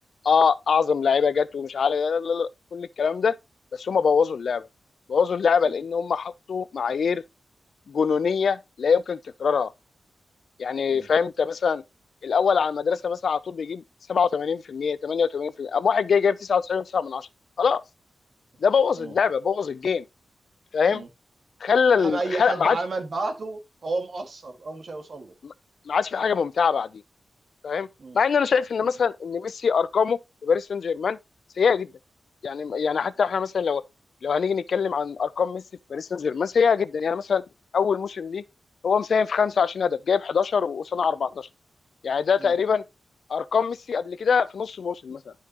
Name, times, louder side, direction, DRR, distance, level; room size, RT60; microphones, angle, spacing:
voice 1, 0.2-3.3 3.7-4.7 5.1-7.2 7.9-9.7 10.6-11.8 12.2-13.8 14.1-17.3 17.6-17.8 18.6-20.0 20.7-21.0 21.6-22.8 25.4-25.5 25.9-26.9 27.6-27.9 28.1-31.2 31.6-31.9 32.4-33.8 34.2-35.6 35.9-37.4 37.7-38.4 38.8-41.5 42.0-42.8 43.3-45.3, left 6 dB, 65° left, 0.5 m, -23 dB
voice 2, 22.0-25.3 28.0-28.2 42.4-42.5, right 3 dB, 50° right, 1.8 m, -32 dB
12.0 x 5.6 x 2.9 m
wide cardioid pair, 130°, 0 cm